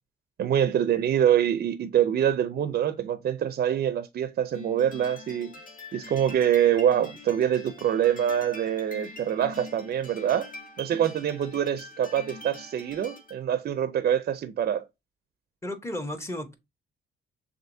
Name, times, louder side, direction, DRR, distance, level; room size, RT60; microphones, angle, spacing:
voice 1, 0.4-5.6 5.9-10.5 10.8-14.8, right 10 dB, 50° right, 0.5 m, -25 dB
sound 1, 4.5-13.4, left 2 dB, 45° left, 1.6 m, -44 dB
voice 2, 15.6-16.6, left 1 dB, 15° left, 1.0 m, -33 dB
6.3 x 2.6 x 2.6 m
cardioid pair, 90°, 20 cm